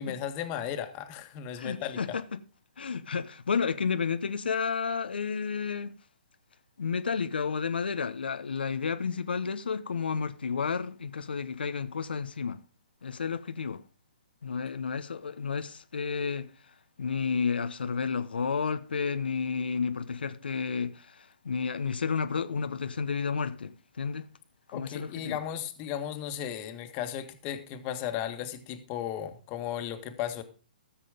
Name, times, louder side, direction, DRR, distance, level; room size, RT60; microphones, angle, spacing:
voice 1, 0.0-2.0 24.7-30.4, left 10 dB, 30° left, 1.7 m, -35 dB
voice 2, 1.6-2.2 2.8-5.9 6.8-12.6 13.0-13.8 14.4-16.5 17.0-24.3 24.7-25.4, left 5 dB, 85° left, 0.9 m, -31 dB
14.5 x 7.5 x 5.0 m
hypercardioid pair, 145°, 5 cm